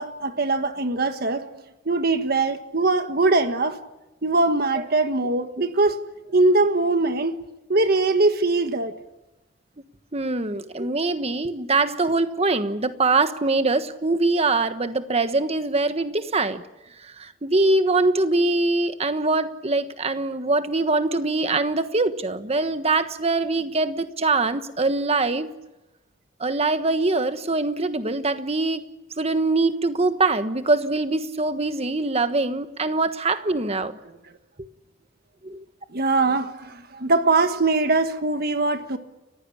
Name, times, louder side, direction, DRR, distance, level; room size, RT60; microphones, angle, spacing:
voice 1, 0.0-1.5 1.8-3.8 4.2-6.0 6.3-7.4 7.7-8.9 33.7-33.8 34.0-34.1 35.9-39.0, right 3 dB, 55° right, 1.5 m, -22 dB
voice 2, 10.1-16.6 17.0-25.5 26.4-28.8 29.2-34.0 35.4-35.6, right 3 dB, 35° right, 1.3 m, -23 dB
29.5 x 15.5 x 8.7 m
head